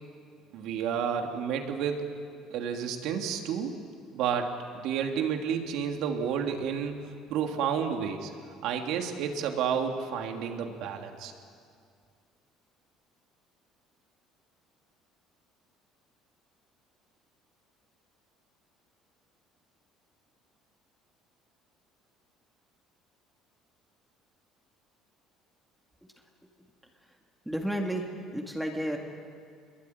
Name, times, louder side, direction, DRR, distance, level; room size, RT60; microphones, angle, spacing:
voice 1, 0.5-2.1 2.5-3.8 4.1-8.3 8.6-11.3, right 7 dB, 70° right, 3 dB, 3.0 m, -31 dB
voice 2, 27.5-29.0, right 1 dB, 5° right, 1 dB, 2.3 m, -32 dB
27.0 x 22.0 x 9.6 m, 2.2 s
cardioid pair, 145°, 0 cm